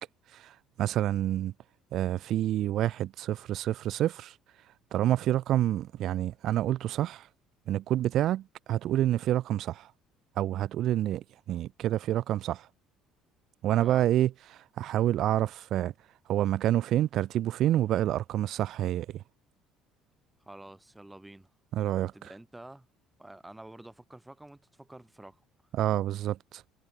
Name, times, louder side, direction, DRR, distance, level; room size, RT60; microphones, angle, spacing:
voice 1, 0.3-1.5 1.9-4.4 4.9-7.3 7.7-9.9 10.4-12.7 13.6-15.9 16.3-19.2 21.7-22.3 25.7-26.6, right 13 dB, 55° right, 0.4 m, -28 dB
voice 2, 20.4-21.5 22.1-22.9 23.2-25.4, right 1 dB, 10° right, 3.2 m, -48 dB
hypercardioid pair, 55°, 0 cm